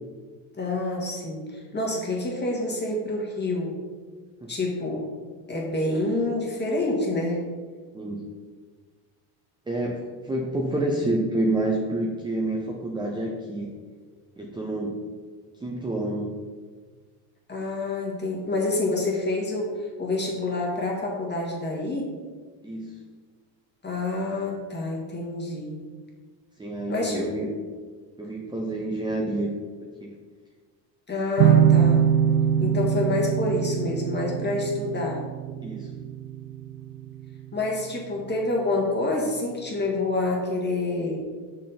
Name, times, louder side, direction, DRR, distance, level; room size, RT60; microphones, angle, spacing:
voice 1, 0.5-3.8 4.5-5.0 5.5-7.5 17.5-22.2 23.8-25.8 26.9-27.2 31.1-32.0 32.6-35.2 37.5-41.2, left 2 dB, 20° left, -2 dB, 1.8 m, -27 dB
voice 2, 9.7-13.7 14.4-15.0 15.6-16.3 22.6-23.0 26.6-27.6 28.2-29.6 30.0-30.2 35.6-36.0, right 1 dB, 10° right, 0 dB, 0.6 m, -28 dB
sound 1, 31.4-38.6, right 9 dB, 60° right, 0.5 m, -24 dB
6.1 x 4.4 x 4.2 m, 1.5 s
supercardioid pair, 95°, 48 cm